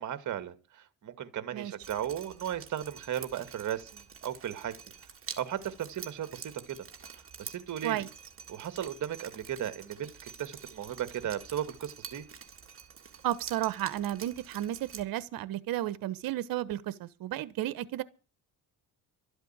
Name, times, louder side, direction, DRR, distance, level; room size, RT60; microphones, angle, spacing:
voice 1, 0.0-4.7 5.4-6.8 7.4-8.1 8.5-12.3, right 10 dB, 55° right, 2.2 m, -36 dB
Drip, 1.8-15.0, right 7 dB, 40° right, 3.1 m, -48 dB
voice 2, 13.2-18.0, right 13 dB, 75° right, 1.3 m, -33 dB
13.0 x 8.0 x 9.0 m
cardioid pair, 90°, 35 cm